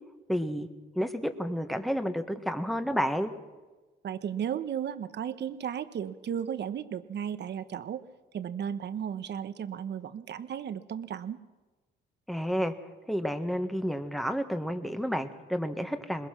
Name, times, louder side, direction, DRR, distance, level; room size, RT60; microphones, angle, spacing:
voice 1, 0.3-0.7 0.9-3.3 12.3-12.7 13.1-16.3, equal, ahead, 7 dB, 1.6 m, -30 dB
voice 2, 4.0-8.0 8.3-11.4, right 8 dB, 60° right, 12 dB, 1.1 m, -34 dB
21.5 x 21.0 x 6.0 m, 1.2 s
cardioid pair, 90°, 20 cm